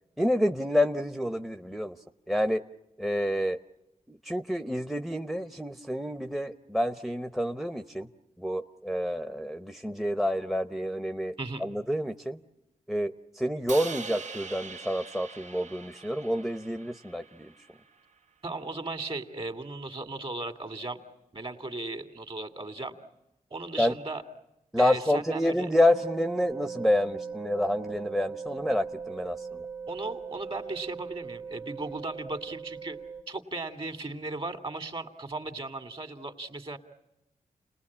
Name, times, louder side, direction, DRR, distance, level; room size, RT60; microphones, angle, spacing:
voice 1, 0.2-2.0 2.3-2.6 3.0-3.6 4.1-8.1 8.4-11.3 11.6-12.4 12.9-17.5 23.8-23.9 24.7-29.6, left 1 dB, ahead, 7 dB, 0.9 m, -28 dB
voice 2, 11.4-11.7 18.4-21.0 21.3-22.9 23.5-24.2 24.8-25.7 29.9-33.0 33.3-36.8, right 2 dB, 40° right, 8 dB, 2.6 m, -36 dB
Crash cymbal, 13.7-17.9, right 4 dB, 60° right, 1.1 m, -42 dB
sound 1, 25.9-33.2, right 5 dB, 75° right, 2.4 m, -39 dB
29.5 x 20.0 x 8.6 m, 0.92 s
cardioid pair, 75°, 14 cm